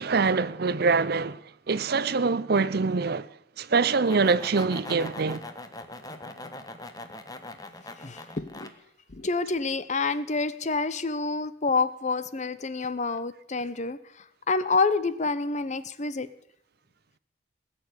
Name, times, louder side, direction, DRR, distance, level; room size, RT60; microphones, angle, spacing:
voice 1, 0.0-1.4 1.7-3.3 3.6-5.4, right 4 dB, 55° right, 0.6 m, -24 dB
sound 1, 3.8-8.7, left 2 dB, 20° left, 1.3 m, -41 dB
voice 2, 8.0-8.7 9.1-14.0 14.5-16.3, left 4 dB, 40° left, 0.8 m, -28 dB
20.0 x 6.9 x 9.5 m
head